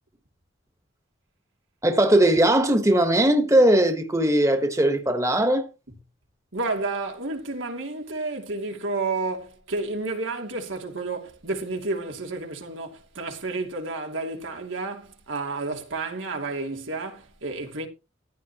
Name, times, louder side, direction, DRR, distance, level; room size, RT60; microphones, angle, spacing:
voice 1, 1.8-5.6, right 1 dB, 15° right, 1.4 m, -19 dB
voice 2, 6.5-17.9, right 3 dB, 90° right, 3.1 m, -31 dB
15.0 x 10.5 x 3.0 m
head